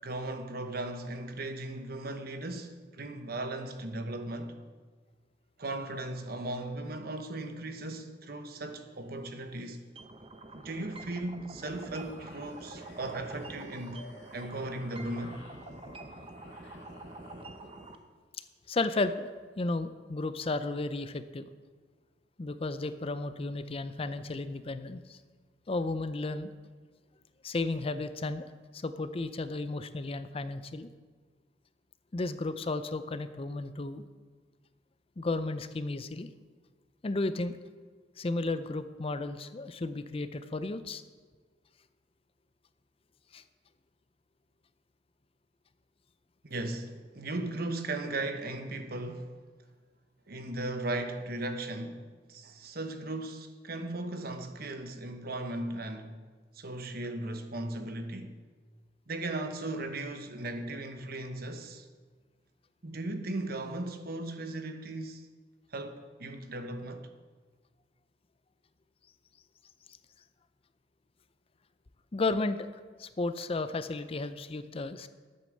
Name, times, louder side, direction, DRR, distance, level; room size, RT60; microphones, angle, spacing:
voice 1, 0.0-4.6 5.6-9.8 10.5-14.1 14.3-15.4 46.4-49.3 50.3-56.2 56.5-58.4 59.1-61.9 62.8-65.3 65.7-67.1, right 2 dB, 60° right, 1.1 m, -37 dB
sound 1, 8.3-10.0 11.5-18.1, left 1 dB, 75° left, 2.4 m, -54 dB
sound 2, 10.0-18.0, right 2 dB, 30° right, 0.8 m, -47 dB
voice 2, 18.7-19.3 19.6-21.4 22.4-25.2 25.7-26.5 27.4-28.5 28.7-30.9 32.1-34.0 35.2-36.3 37.0-37.5 38.2-41.0 43.3-43.4 72.1-72.7 73.0-75.1, left 2 dB, 35° left, 0.5 m, -33 dB
11.0 x 8.5 x 6.5 m
head